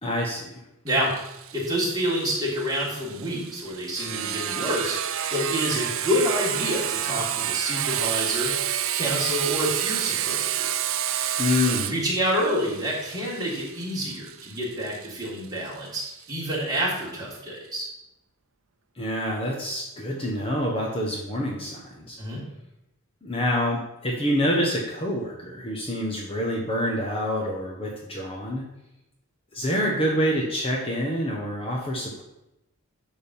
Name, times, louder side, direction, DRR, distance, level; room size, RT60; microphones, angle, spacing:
voice 1, 0.0-0.6 11.4-11.9 19.0-22.2 23.2-28.6 29.5-32.2, left 1 dB, 25° left, -2 dB, 1.3 m, -27 dB
voice 2, 0.8-1.1 1.5-4.9 5.3-8.5 8.9-10.7 11.7-17.9 22.2-22.4, equal, 15° right, -6 dB, 3.5 m, -28 dB
Sawing, 0.9-16.3, right 10 dB, 65° right, 0.6 m, -30 dB
11.0 x 3.9 x 7.2 m, 0.90 s
head